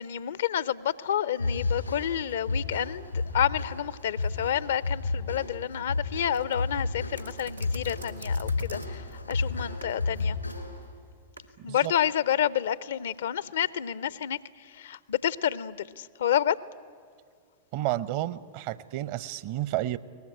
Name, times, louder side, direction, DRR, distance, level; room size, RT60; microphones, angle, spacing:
voice 1, 0.0-10.4 11.6-14.4 14.7-16.6, left 10 dB, 60° left, 20 dB, 0.6 m, -29 dB
sound 1, 1.4-10.9, left 3 dB, 85° left, 2.6 m, -32 dB
sound 2, 6.3-11.5, right 3 dB, 90° right, 1.6 m, -47 dB
voice 2, 17.7-20.0, right 15 dB, 50° right, 19 dB, 0.7 m, -31 dB
22.5 x 19.0 x 9.9 m, 2.1 s
figure-of-eight pair, 90°, 0 cm